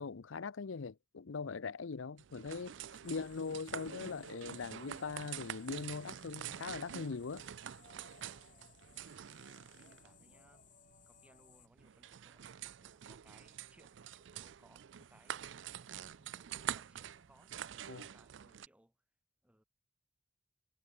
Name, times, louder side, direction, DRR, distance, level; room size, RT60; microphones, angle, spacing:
voice 1, 0.0-2.8 3.0-7.4 17.9-18.0, left 4 dB, 90° left, 0.6 m, -41 dB
sound 1, 2.2-18.7, right 9 dB, 70° right, 0.4 m, -47 dB
sound 2, 3.0-11.7, left 6 dB, 40° left, 7.2 m, -63 dB
voice 2, 8.5-8.8 9.3-10.7 11.1-12.5 12.8-19.0 19.4-19.6, right 1 dB, 5° right, 3.4 m, -68 dB
head